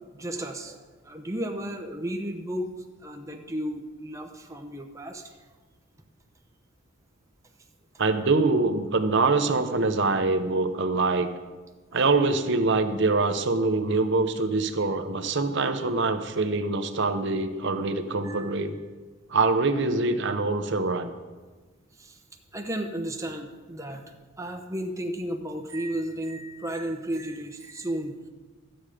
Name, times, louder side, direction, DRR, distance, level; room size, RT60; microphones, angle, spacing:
voice 1, 0.0-2.7 3.0-5.3 11.9-12.1 18.2-18.7 22.0-22.2 22.5-28.3, right 1 dB, 15° right, 4 dB, 0.9 m, -34 dB
voice 2, 8.0-11.3 11.9-18.8 19.3-21.1, right 3 dB, 55° right, 8 dB, 0.8 m, -24 dB
12.5 x 9.0 x 5.0 m, 1.3 s
head